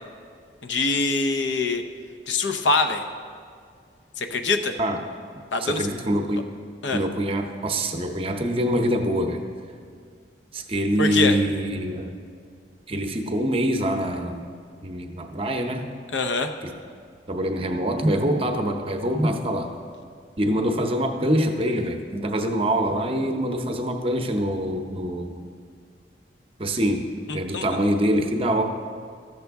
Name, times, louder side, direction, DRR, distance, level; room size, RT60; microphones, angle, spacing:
voice 1, 0.6-1.8 2.3-3.0 4.2-4.7 5.5-5.9 6.8-7.0 11.0-11.4 16.1-16.5 27.3-27.6, left 3 dB, 85° left, 7 dB, 0.6 m, -24 dB
voice 2, 5.6-6.4 6.9-9.4 10.5-12.1 12.9-14.5 14.8-15.9 16.6-16.7 17.3-19.7 20.4-25.4 26.6-27.1 27.3-28.6, equal, 30° right, 4 dB, 0.7 m, -24 dB
13.5 x 6.7 x 3.5 m, 2.1 s
head